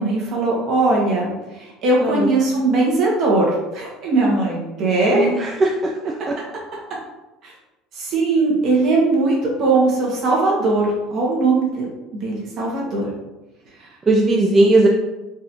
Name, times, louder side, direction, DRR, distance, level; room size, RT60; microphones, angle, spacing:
voice 1, 0.0-5.3 7.4-7.5 7.9-11.9 12.1-13.1 13.8-13.9, right 2 dB, 45° right, -3 dB, 1.2 m, -19 dB
voice 2, 2.0-2.4 5.1-6.3 14.1-14.9, right 2 dB, 20° right, 0 dB, 0.3 m, -18 dB
3.9 x 2.6 x 2.9 m, 1.1 s
cardioid pair, 150°, 0 cm